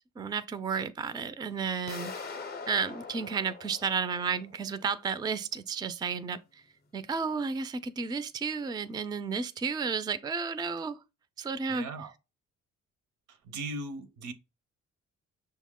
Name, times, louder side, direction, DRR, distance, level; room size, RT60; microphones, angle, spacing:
voice 1, 0.2-2.1 2.7-6.4 6.9-11.0 11.4-11.9, right 5 dB, 15° right, 0.3 m, -32 dB
sound 1, 1.9-4.7, left 4 dB, 35° left, 0.6 m, -42 dB
voice 2, 11.7-12.1 13.3-14.3, right 2 dB, 80° right, 0.7 m, -38 dB
5.8 x 2.1 x 3.6 m
cardioid pair, 90°, 30 cm